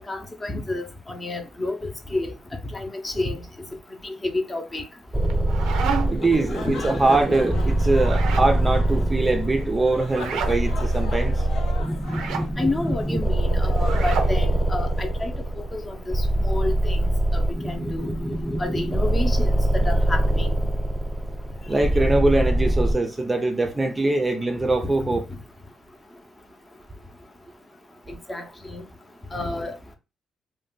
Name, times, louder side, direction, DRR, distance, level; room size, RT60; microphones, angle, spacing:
voice 1, 0.1-2.3 2.7-3.4 4.0-4.8 6.6-6.8 12.6-18.1 18.6-20.5 25.0-25.2 28.1-28.8 29.3-30.0, left 2 dB, 25° left, 0.7 m, -30 dB
sound 1, 5.1-22.9, right 1 dB, ahead, 1.0 m, -23 dB
sound 2, 5.2-6.3 8.0-8.5 10.1-10.6 12.0-12.5 13.8-14.4, right 7 dB, 90° right, 0.5 m, -30 dB
sound 3, 6.0-15.1, left 3 dB, 70° left, 0.7 m, -41 dB
voice 2, 6.1-11.4 21.7-25.2, right 2 dB, 20° right, 0.5 m, -22 dB
2.5 x 2.2 x 3.8 m
cardioid pair, 90°, 0 cm